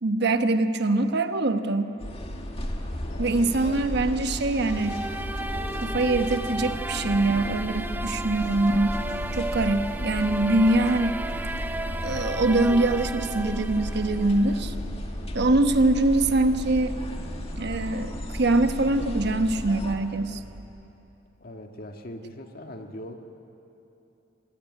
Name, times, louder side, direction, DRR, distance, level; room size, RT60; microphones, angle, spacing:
voice 1, 0.0-1.9 3.2-5.0 5.8-9.0 9.3-11.1 12.0-14.7 15.3-16.9 17.6-20.4, right 2 dB, 60° right, 8 dB, 1.0 m, -23 dB
sound 1, 2.0-20.0, equal, 30° left, 2.0 m, -34 dB
sound 2, 2.0-20.7, equal, 80° right, 3.1 m, -48 dB
voice 2, 3.0-4.2 21.4-23.1, left 1 dB, 50° left, 4 dB, 1.7 m, -42 dB
sound 3, 4.6-14.6, right 2 dB, 10° right, 0.5 m, -34 dB
26.0 x 17.0 x 9.4 m, 3.0 s
head